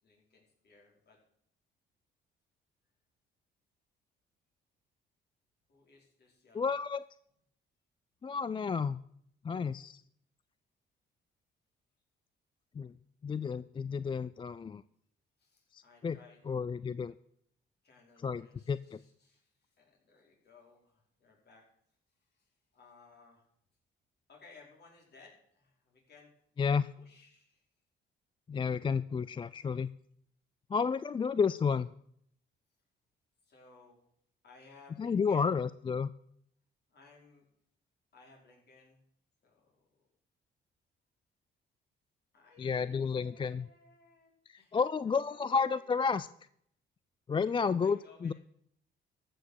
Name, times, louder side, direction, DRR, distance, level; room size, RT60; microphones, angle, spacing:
voice 1, 0.0-1.2 5.7-6.8 15.4-17.0 17.8-21.6 22.1-23.4 24.3-27.7 33.4-34.0 34.4-35.6 36.9-37.5 38.1-39.0 39.4-40.1 42.3-44.8 45.0-46.2 47.8-48.3, left 4 dB, 55° left, -1 dB, 4.9 m, -61 dB
voice 2, 6.5-7.0 8.2-9.0 9.4-10.0 12.8-12.9 13.2-14.8 15.7-16.2 16.5-17.1 18.2-18.4 18.7-18.8 26.6-26.8 28.5-29.9 30.7-31.9 35.0-36.1 42.6-43.7 44.5-46.3 47.3-48.3, left 5 dB, 25° left, 16 dB, 0.3 m, -31 dB
14.0 x 6.5 x 6.5 m, 0.69 s
cardioid pair, 90°, 20 cm